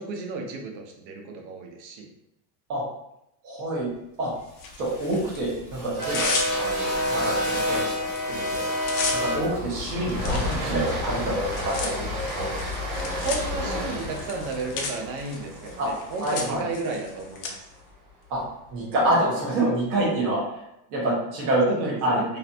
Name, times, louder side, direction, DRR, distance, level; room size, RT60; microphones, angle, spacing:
voice 1, 0.0-2.1 13.2-17.6 21.7-22.2, right 3 dB, 80° right, 2 dB, 0.7 m, -33 dB
voice 2, 3.4-3.9 4.2-4.3 4.8-6.3 6.6-8.6 9.1-12.1 12.3-12.5 15.8-15.9 16.2-16.7 18.3-18.4 18.7-20.4 20.9-21.7 22.0-22.2, right 1 dB, 25° right, -6 dB, 0.3 m, -27 dB
Tearing, 4.6-5.4 5.8-6.9 7.4-7.6 7.8-8.2 8.4-17.5, left 4 dB, 55° left, 0.5 m, -34 dB
sound 1, 4.7-16.9, left 1 dB, 45° right, 1.1 m, -30 dB
2.6 x 2.1 x 2.5 m, 0.82 s
cardioid pair, 180°, 50 cm